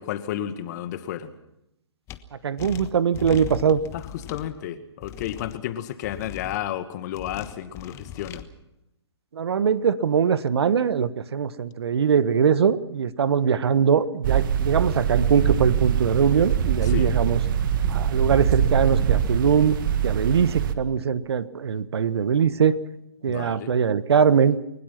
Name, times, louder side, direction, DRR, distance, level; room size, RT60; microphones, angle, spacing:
voice 1, 0.0-1.3 3.9-8.5 16.8-17.1 23.3-23.7, left 11 dB, 40° left, 10 dB, 2.0 m, -32 dB
sound 1, 2.1-2.2 2.6-4.5 5.0-5.6 6.0-6.6 7.1-8.4, left 10 dB, 20° left, 1.3 m, -39 dB
voice 2, 2.4-3.8 9.3-17.4 17.9-19.8 20.0-22.8 23.2-24.6, right 7 dB, 65° right, 16 dB, 1.3 m, -22 dB
sound 2, 14.2-20.7, right 8 dB, 45° right, 2.0 m, -23 dB
29.5 x 17.0 x 5.9 m, 0.84 s
hypercardioid pair, 140°, 15 cm